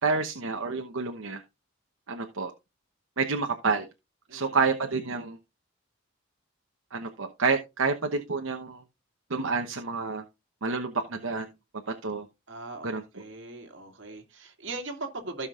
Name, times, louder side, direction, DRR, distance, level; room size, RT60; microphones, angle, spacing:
voice 1, 0.0-1.4 2.1-2.5 3.2-3.9 4.3-5.4 6.9-8.8 9.3-10.2 10.6-11.5 11.9-12.3 12.8-13.0, right 4 dB, 75° right, 1.0 m, -28 dB
voice 2, 12.5-15.5, right 3 dB, 60° right, 2.4 m, -39 dB
16.0 x 5.9 x 2.4 m
head